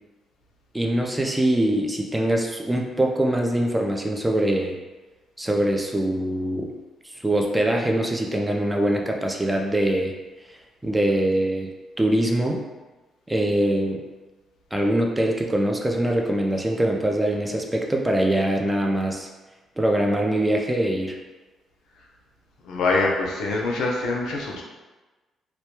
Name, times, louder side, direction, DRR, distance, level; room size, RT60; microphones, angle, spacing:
voice 1, 0.7-4.8 5.4-6.7 7.2-10.1 10.8-11.7 12.0-12.6 13.3-14.0 14.7-19.3 19.8-21.2, right 1 dB, 10° right, 1 dB, 0.4 m, -23 dB
voice 2, 22.6-24.6, left 3 dB, 80° left, -1 dB, 0.5 m, -24 dB
2.2 x 2.1 x 2.9 m, 1.2 s
cardioid pair, 90°, 0 cm